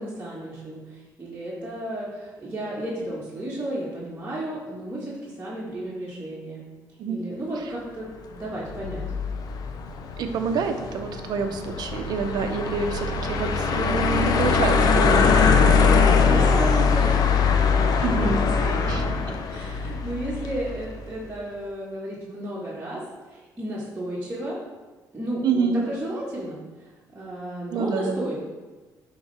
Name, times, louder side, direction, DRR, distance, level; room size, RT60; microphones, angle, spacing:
voice 1, 0.0-6.6 7.1-9.1 16.1-18.9 19.3-23.0 23.3-24.6 25.1-28.4, right 1 dB, 20° right, -8 dB, 1.8 m, -33 dB
sound 1, 8.7-20.9, left 5 dB, 65° left, 0.6 m, -22 dB
voice 2, 10.2-15.4 18.0-18.5 18.9-19.4 25.4-25.8 27.7-28.2, right 5 dB, 70° right, 6 dB, 0.7 m, -27 dB
10.0 x 4.1 x 3.5 m, 1.3 s
cardioid pair, 105°, 7 cm